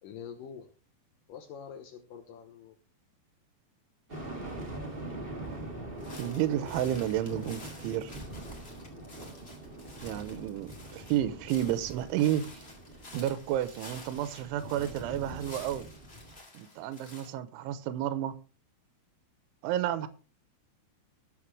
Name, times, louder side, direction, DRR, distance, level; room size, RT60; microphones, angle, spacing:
voice 1, 0.0-0.7 1.3-2.8, left 7 dB, 85° left, 1.9 m, -45 dB
sound 1, 4.1-16.4, right 1 dB, 25° right, 1.3 m, -43 dB
sound 2, 6.0-17.3, left 2 dB, 30° left, 1.1 m, -51 dB
voice 2, 6.2-8.1 10.0-12.6 13.1-15.9 16.5-18.3 19.6-20.1, right 12 dB, 85° right, 3.2 m, -31 dB
19.0 x 7.9 x 3.2 m
omnidirectional pair, 5.4 m